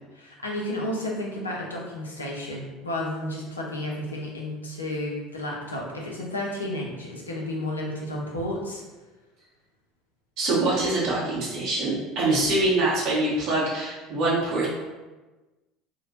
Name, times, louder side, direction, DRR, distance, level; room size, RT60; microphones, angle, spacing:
voice 1, 0.1-8.8, left 1 dB, 85° left, -2 dB, 0.4 m, -32 dB
voice 2, 10.4-14.7, right 2 dB, 55° right, -6 dB, 0.7 m, -24 dB
2.5 x 2.1 x 2.8 m, 1.2 s
figure-of-eight pair, 65°, 0 cm